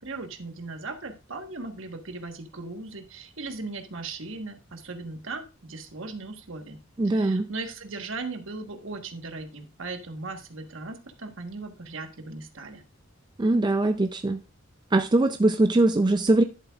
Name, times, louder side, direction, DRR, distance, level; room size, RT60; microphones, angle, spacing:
voice 1, 0.0-6.8 7.0-12.8, right 3 dB, 60° right, 1.3 m, -38 dB
voice 2, 7.0-7.5 13.4-14.4 14.9-16.4, right 2 dB, 20° right, 0.4 m, -21 dB
11.0 x 7.5 x 2.4 m
head